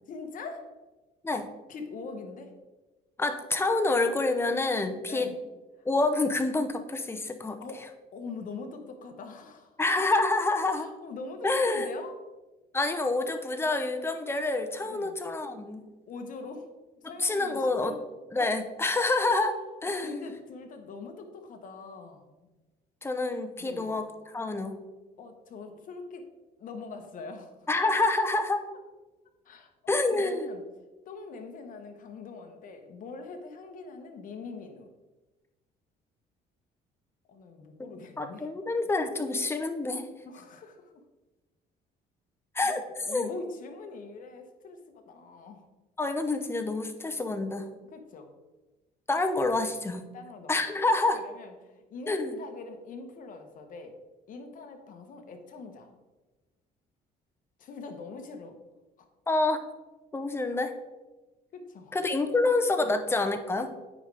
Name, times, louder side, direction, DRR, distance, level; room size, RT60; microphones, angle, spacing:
voice 1, 0.1-0.7 1.7-2.5 5.0-5.4 7.6-9.8 10.7-12.1 14.8-15.2 16.1-16.7 17.0-18.0 20.0-22.5 23.6-23.9 25.2-26.3 26.6-27.7 29.4-30.6 31.1-34.9 37.3-38.5 40.2-41.0 42.6-45.7 47.9-48.3 50.1-50.9 51.1-53.9 54.3-55.9 57.6-58.6 61.5-62.0 62.8-62.9, left 4 dB, 55° left, 5 dB, 1.1 m, -43 dB
voice 2, 3.2-5.3 5.8-7.6 9.8-10.9 11.4-11.9 12.7-15.8 17.0-17.9 18.3-20.3 23.0-24.8 27.7-28.7 29.9-30.5 37.8-37.9 38.2-40.1 42.5-43.3 46.0-47.7 49.1-50.1 50.5-51.2 52.1-52.4 59.3-59.6 60.1-60.7 61.9-63.7, left 2 dB, 15° left, 7 dB, 0.7 m, -27 dB
8.6 x 5.1 x 3.4 m, 1.2 s
cardioid pair, 110°, 17 cm